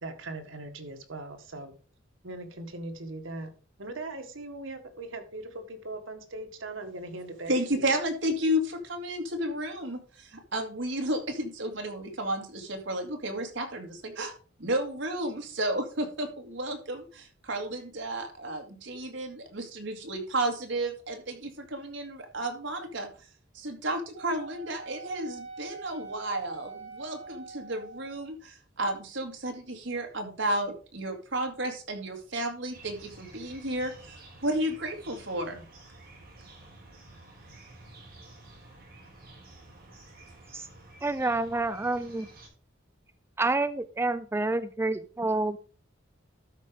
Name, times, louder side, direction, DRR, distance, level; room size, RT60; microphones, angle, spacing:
voice 1, 0.0-1.8 2.2-3.5 3.8-7.9, right 2 dB, 85° right, 6 dB, 1.7 m, -40 dB
voice 2, 7.5-14.3 14.6-23.1 23.5-35.6, right 1 dB, 65° right, 4 dB, 2.1 m, -32 dB
Wind instrument woodwind instrument, 24.1-28.3, right 4 dB, 30° right, 4.0 m, -44 dB
sound 1, 32.7-42.5, right 2 dB, 50° right, 4.8 m, -51 dB
voice 3, 41.0-42.3 43.4-45.6, right 2 dB, 10° right, 12 dB, 0.4 m, -28 dB
12.5 x 5.0 x 5.0 m, 0.39 s
head